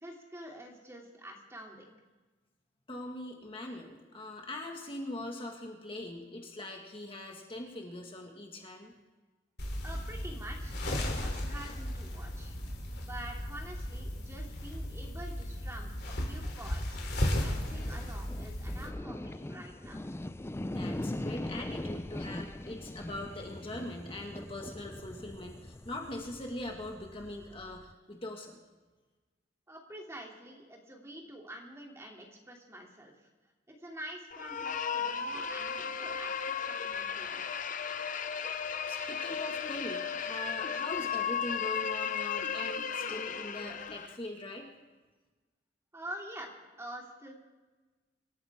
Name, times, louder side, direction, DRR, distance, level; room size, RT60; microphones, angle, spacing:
voice 1, 0.0-1.9 9.8-12.5 13.0-17.0 17.4-20.0 29.7-33.3 33.7-37.6 45.9-47.3, right 1 dB, 15° right, -1 dB, 2.8 m, -47 dB
voice 2, 2.9-8.9 20.6-28.6 38.8-44.7, left 1 dB, 30° left, 1 dB, 1.8 m, -42 dB
sound 1, 9.6-18.9, left 1 dB, 65° left, 3.2 m, -35 dB
sound 2, 17.5-27.9, left 1 dB, 15° left, 0.5 m, -41 dB
sound 3, 34.3-44.2, left 7 dB, 45° left, 0.8 m, -35 dB
26.0 x 13.5 x 3.6 m, 1.2 s
head